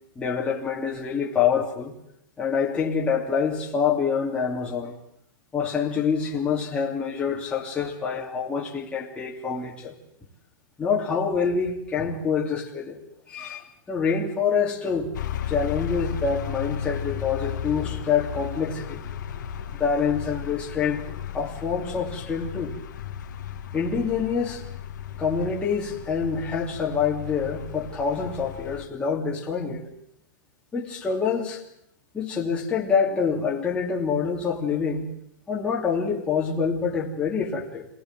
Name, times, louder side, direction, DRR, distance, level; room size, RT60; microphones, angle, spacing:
voice 1, 0.2-2.0 2.4-5.0 5.5-10.0 10.8-13.0 13.3-15.1 15.5-19.0 19.8-21.0 21.3-22.8 23.7-24.6 25.2-29.8 30.7-31.6 32.1-35.1 35.5-37.9, left 6 dB, 10° left, -4 dB, 2.8 m, -26 dB
Foley Village A Car Passed By, 15.1-28.9, left 9 dB, 65° left, 2.3 m, -35 dB
26.0 x 18.5 x 7.6 m, 0.75 s
hypercardioid pair, 155°, 11 cm